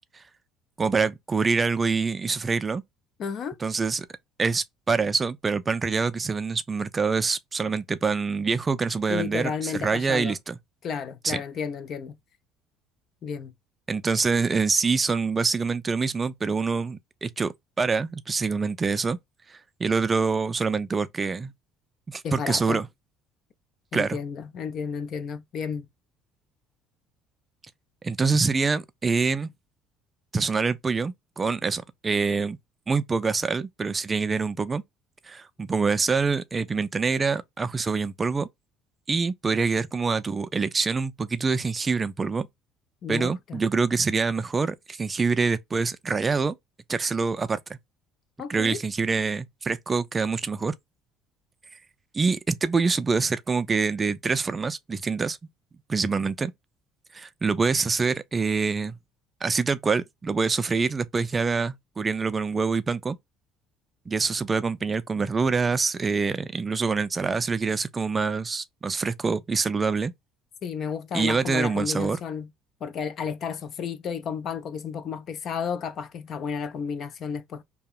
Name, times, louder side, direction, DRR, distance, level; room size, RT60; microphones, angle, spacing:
voice 1, 0.8-2.8 3.6-4.1 4.4-10.6 11.2-11.4 13.9-19.2 19.5-21.5 22.1-22.9 23.9-24.2 28.0-29.5 30.3-32.6 32.9-34.8 35.2-38.5 39.1-42.5 43.1-46.5 46.9-47.8 48.5-50.8 52.1-55.4 55.9-56.5 57.1-59.0 59.4-63.2 64.1-70.1 71.1-72.2, right 4 dB, 25° right, 0.3 m, -25 dB
voice 2, 3.2-3.6 9.1-10.3 10.8-12.2 13.2-13.5 22.2-22.8 23.9-25.9 43.0-43.6 48.4-48.8 70.6-72.5 72.8-77.6, left 6 dB, 55° left, 0.5 m, -32 dB
2.9 x 2.7 x 2.3 m
supercardioid pair, 95°, 0 cm